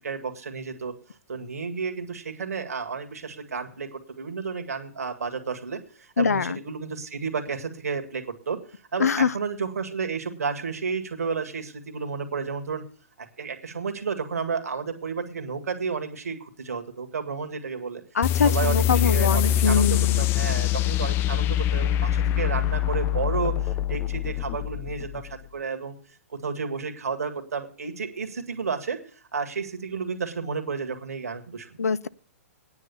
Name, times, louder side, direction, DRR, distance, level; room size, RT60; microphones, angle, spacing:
voice 1, 0.0-0.9 1.3-8.6 8.9-12.8 13.2-18.0 18.4-26.0 26.4-31.8, right 5 dB, 75° right, 1.9 m, -32 dB
voice 2, 6.2-6.6 9.0-9.3 18.1-20.2 31.8-32.1, left 6 dB, 85° left, 0.6 m, -23 dB
sound 1, 18.2-25.3, left 11 dB, 25° left, 0.5 m, -24 dB
9.7 x 8.5 x 7.0 m
hypercardioid pair, 125°, 8 cm